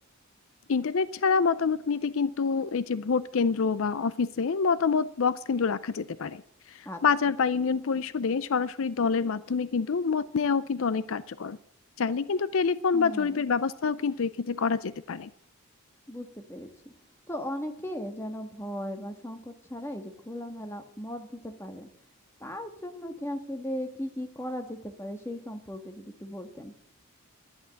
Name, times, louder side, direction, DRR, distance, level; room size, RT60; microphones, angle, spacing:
voice 1, 0.7-6.4 6.7-11.6 12.0-15.3, left 5 dB, 65° left, 15 dB, 0.5 m, -27 dB
voice 2, 12.9-13.4 16.1-16.9 17.3-21.9 22.4-26.7, equal, 10° left, 5 dB, 1.4 m, -37 dB
11.0 x 11.0 x 7.7 m, 0.72 s
head